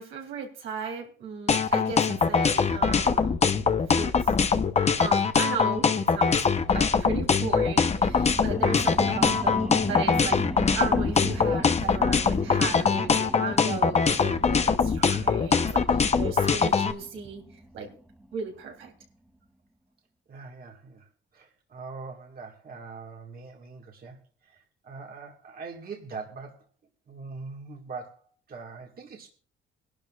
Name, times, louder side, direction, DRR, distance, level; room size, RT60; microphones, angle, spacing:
voice 1, 0.0-3.3 3.9-4.1 5.0-10.4 10.7-17.4 17.7-17.9 18.3-18.9, right 5 dB, 90° right, 0 dB, 3.3 m, -36 dB
sound 1, 1.5-16.9, left 5 dB, 35° left, 0.8 m, -22 dB
sound 2, 7.5-18.6 19.0-19.1, right 1 dB, 5° right, 0.9 m, -38 dB
voice 2, 9.0-9.3 20.3-26.6 27.1-28.2 28.5-29.3, right 4 dB, 50° right, 1 dB, 1.8 m, -42 dB
21.0 x 12.0 x 2.4 m, 0.43 s
cardioid pair, 90°, 20 cm